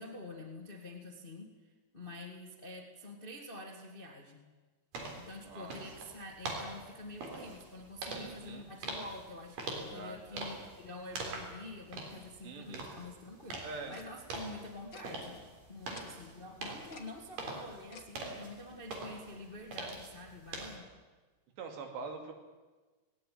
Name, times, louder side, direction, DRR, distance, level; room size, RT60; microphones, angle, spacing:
voice 1, 0.0-4.5 5.2-15.4 15.7-20.9, left 2 dB, 30° left, 2 dB, 0.9 m, -47 dB
sound 1, 4.9-20.8, right 2 dB, 55° right, 5.0 m, -44 dB
voice 2, 5.4-5.8 8.1-8.7 9.9-10.5 12.4-12.9 13.6-14.0 21.6-22.3, right 4 dB, 85° right, 4 dB, 4.7 m, -44 dB
Tick-tock, 13.9-14.1 14.9-15.0 15.9-16.0 16.9-17.1 17.9-18.1, left 6 dB, 80° left, 1.1 m, -51 dB
19.0 x 18.0 x 9.5 m, 1.3 s
omnidirectional pair, 4.8 m